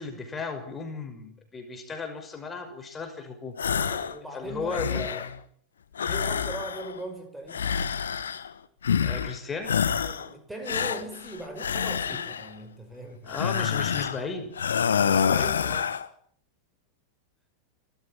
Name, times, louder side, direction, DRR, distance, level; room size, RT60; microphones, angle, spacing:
voice 1, 0.0-3.6 4.3-5.3 9.0-9.7 12.1-12.2 13.2-14.5, left 4 dB, 20° left, 6 dB, 5.7 m, -35 dB
sound 1, 3.6-4.2 4.5-5.4 6.0-7.0 7.5-8.5 8.8-9.4 9.6-10.3 10.7-12.5 13.3-14.2 14.6-16.1, left 7 dB, 70° left, 1.4 m, -27 dB
voice 2, 3.7-5.1 6.0-7.7 10.0-13.4 15.0-16.0, right 1 dB, 5° right, 5 dB, 5.6 m, -40 dB
29.5 x 14.5 x 9.1 m, 0.62 s
figure-of-eight pair, 90°, 0 cm